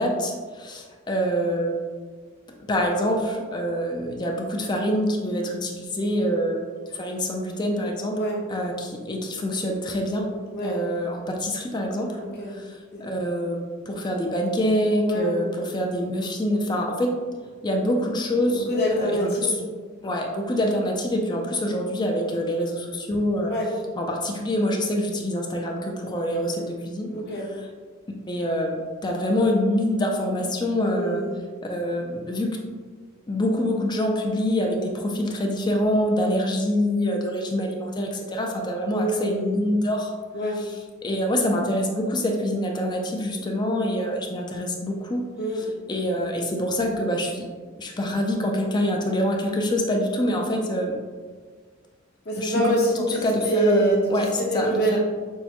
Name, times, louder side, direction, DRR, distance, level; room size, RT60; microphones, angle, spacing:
voice 1, 0.0-1.8 2.7-6.6 7.0-8.2 8.5-10.2 10.6-12.2 12.5-12.7 13.0-13.6 13.9-17.1 17.6-18.7 19.0-19.5 20.0-23.5 24.0-27.1 28.3-31.2 31.7-32.6 33.3-40.1 41.0-45.2 45.9-47.5 47.8-50.9 52.4-52.8 53.2-55.0, equal, 20° left, 1 dB, 0.4 m, -25 dB
voice 2, 10.5-10.8 12.2-12.6 12.9-13.0 15.0-15.4 18.4-19.6 23.5-23.8 27.1-27.5 30.8-31.4 38.9-39.6 40.3-40.6 45.4-45.6 52.2-54.1 54.4-55.0, equal, 55° left, -4 dB, 1.0 m, -26 dB
6.3 x 2.1 x 2.9 m, 1.5 s
head